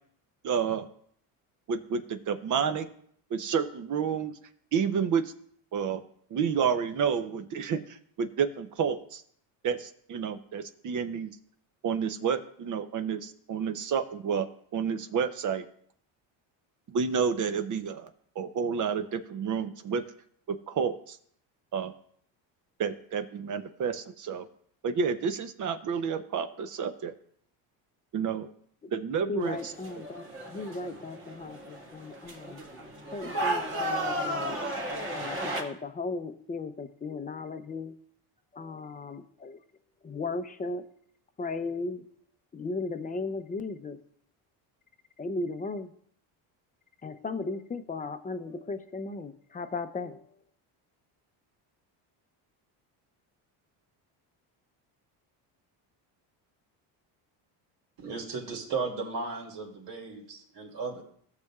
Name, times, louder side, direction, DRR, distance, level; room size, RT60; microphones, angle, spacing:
voice 1, 0.4-0.9 1.7-2.9 3.3-4.4 4.7-5.3 5.7-6.0 6.3-9.2 9.6-11.3 11.8-14.5 14.7-15.6 16.9-18.1 18.4-20.0 20.5-21.2 21.7-21.9 22.8-24.5 24.8-27.1 28.1-28.5 28.9-29.7, right 6 dB, 40° right, 11 dB, 0.7 m, -30 dB
voice 2, 29.3-30.2 30.5-32.6 33.1-34.6 35.1-37.9 38.5-39.6 40.0-40.8 41.4-42.0 42.5-44.0 45.2-45.9 47.0-50.2, left 3 dB, 20° left, 9 dB, 0.6 m, -36 dB
sound 1, 29.4-35.6, right 1 dB, 25° right, 1.9 m, -34 dB
voice 3, 58.0-61.0, right 4 dB, 65° right, 0 dB, 2.6 m, -35 dB
15.0 x 6.7 x 2.4 m, 0.62 s
cardioid pair, 105°, 46 cm